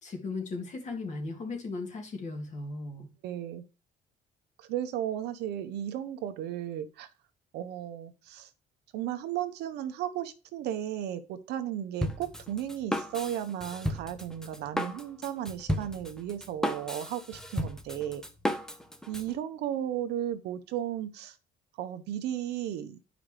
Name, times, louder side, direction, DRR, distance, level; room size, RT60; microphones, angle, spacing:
voice 1, 0.0-3.1, left 3 dB, 45° left, 3 dB, 2.2 m, -37 dB
voice 2, 3.2-3.6 4.6-7.1 7.5-8.5 8.9-18.2 19.1-21.4 21.8-23.0, right 11 dB, 85° right, 10 dB, 0.9 m, -35 dB
Drum kit, 12.0-19.3, equal, 5° left, 0.8 m, -34 dB
10.5 x 5.0 x 3.3 m, 0.31 s
cardioid pair, 110°, 17 cm